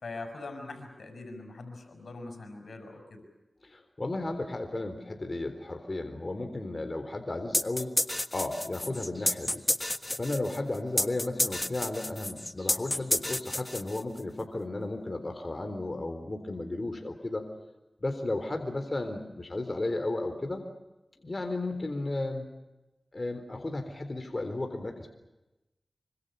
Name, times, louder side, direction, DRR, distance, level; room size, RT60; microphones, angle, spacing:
voice 1, 0.0-3.2, left 3 dB, 85° left, 6 dB, 6.4 m, -42 dB
voice 2, 3.6-7.9 8.3-9.6 10.2-17.5 18.0-20.6 21.2-22.5 23.1-25.1, left 2 dB, 40° left, 6 dB, 3.8 m, -34 dB
sound 1, 7.5-14.2, left 1 dB, 20° left, 1.5 m, -30 dB
26.5 x 25.0 x 6.9 m, 1.0 s
cardioid pair, 55°, 0 cm